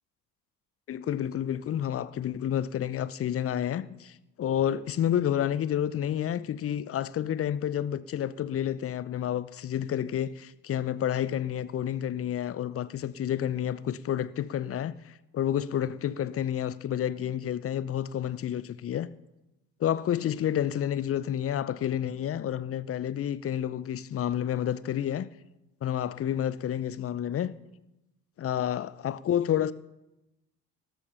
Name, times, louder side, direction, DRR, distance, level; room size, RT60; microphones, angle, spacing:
voice 1, 0.9-19.1 19.8-25.3 25.8-27.5 28.4-29.7, left 10 dB, 30° left, 0.6 m, -30 dB
13.0 x 12.5 x 5.6 m
figure-of-eight pair, 55°, 47 cm